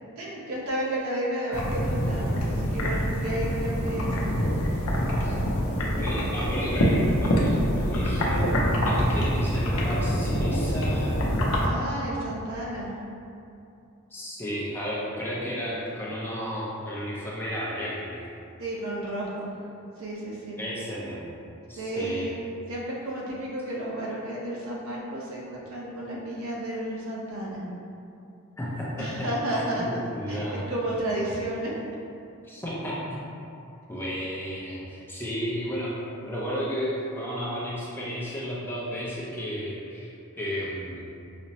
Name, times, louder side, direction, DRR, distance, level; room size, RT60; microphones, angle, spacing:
voice 1, 0.2-4.4 11.6-12.9 18.6-19.5 20.0-20.6 21.8-22.4 22.7-27.6 29.0-30.0 30.3-31.7, right 1 dB, 80° right, -5 dB, 0.7 m, -32 dB
sound 1, 1.5-11.7, equal, 80° left, 0.5 m, -25 dB
voice 2, 5.2-11.5 14.1-18.2 20.6-21.4 21.7-22.3 28.6-30.7 32.4-33.2 33.9-35.9 36.2-41.0, equal, 10° left, -8 dB, 0.4 m, -33 dB
5.0 x 2.0 x 2.7 m, 2.6 s
head